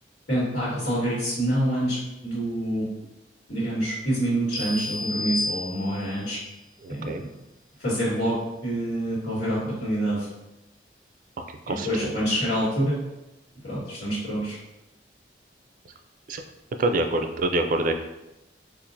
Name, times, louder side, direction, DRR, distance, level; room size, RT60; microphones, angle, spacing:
voice 1, 0.3-2.9 3.5-6.4 6.9-7.1 7.8-10.3 11.7-13.0 13.6-14.6, right 1 dB, 90° left, -12 dB, 1.5 m, -26 dB
sound 1, 4.5-6.2, left 2 dB, 30° left, 0.4 m, -31 dB
voice 2, 6.8-7.2 11.7-12.1 16.3-16.4 16.8-17.9, right 2 dB, 50° right, 6 dB, 0.3 m, -25 dB
4.3 x 2.4 x 2.6 m, 0.96 s
head